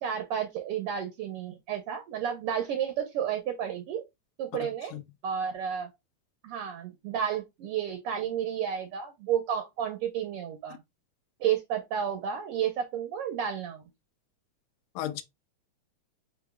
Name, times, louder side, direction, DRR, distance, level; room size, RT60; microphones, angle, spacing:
voice 1, 0.0-4.0 4.4-4.9 5.2-5.9 6.4-10.8 11.4-13.8, right 8 dB, 70° right, 1.5 m, -31 dB
voice 2, 4.6-5.0 15.0-15.2, left 12 dB, 75° left, 1.8 m, -36 dB
8.2 x 2.8 x 2.2 m
omnidirectional pair, 3.3 m